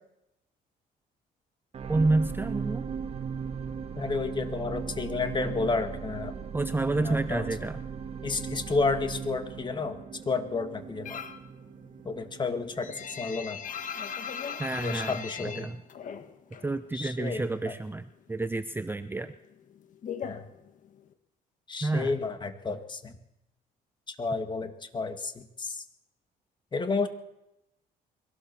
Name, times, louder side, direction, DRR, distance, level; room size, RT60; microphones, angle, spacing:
sound 1, 1.7-14.1 14.7-14.8, right 6 dB, 40° right, 1.8 m, -38 dB
voice 1, 1.9-2.9 6.5-7.8 14.6-15.8 16.6-19.3 21.8-22.1, right 2 dB, 10° right, 11 dB, 0.8 m, -29 dB
voice 2, 4.0-6.3 6.9-7.5 8.2-10.0 10.3-11.2 12.0-13.6 14.8-15.7 16.9-17.7 20.2-20.5 21.7-23.1 24.2-25.8 26.7-27.1, left 4 dB, 25° left, 8 dB, 2.0 m, -31 dB
sound 2, 11.1-11.5 11.8-16.7 17.0-18.0 18.3-21.1, left 7 dB, 50° left, 1.7 m, -39 dB
22.5 x 17.0 x 7.1 m, 0.87 s
cardioid pair, 110°, 17 cm